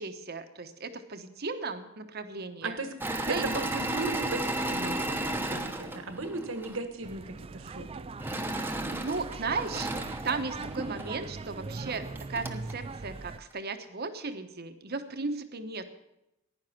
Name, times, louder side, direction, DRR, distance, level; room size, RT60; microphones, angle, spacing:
voice 1, 0.0-2.8 3.3-3.5 8.9-9.9 10.2-15.9, right 4 dB, 50° right, 9 dB, 1.1 m, -35 dB
voice 2, 2.6-2.9 3.3-8.1, right 3 dB, 70° right, 8 dB, 1.4 m, -36 dB
Engine / Mechanisms, 3.0-6.8 8.2-11.1 11.8-11.9 12.1-12.7, right 1 dB, 10° right, 1.0 m, -34 dB
sound 1, 7.0-13.4, right 3 dB, 30° right, 0.4 m, -40 dB
15.0 x 10.5 x 5.9 m, 0.89 s
head